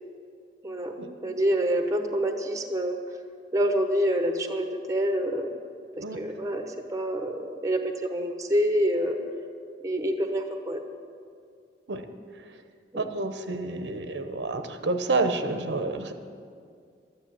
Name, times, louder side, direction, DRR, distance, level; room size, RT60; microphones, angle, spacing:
voice 1, 1.2-2.9 3.5-5.5 6.0-9.2 9.8-10.8 12.9-13.1, equal, 20° right, 5 dB, 1.0 m, -27 dB
voice 2, 12.9-16.1, right 3 dB, 90° right, 8 dB, 0.9 m, -29 dB
12.5 x 9.6 x 7.5 m, 2.2 s
head